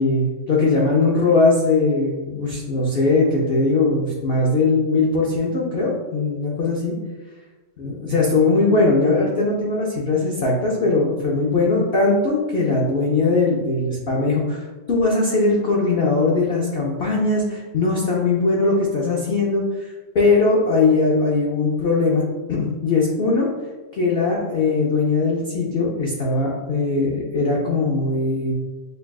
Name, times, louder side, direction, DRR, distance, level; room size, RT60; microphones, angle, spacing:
voice 1, 0.0-7.0 7.8-23.5 23.9-28.5, left 3 dB, 90° left, -3 dB, 0.5 m, -20 dB
6.5 x 2.3 x 2.3 m, 1.2 s
omnidirectional pair, 1.8 m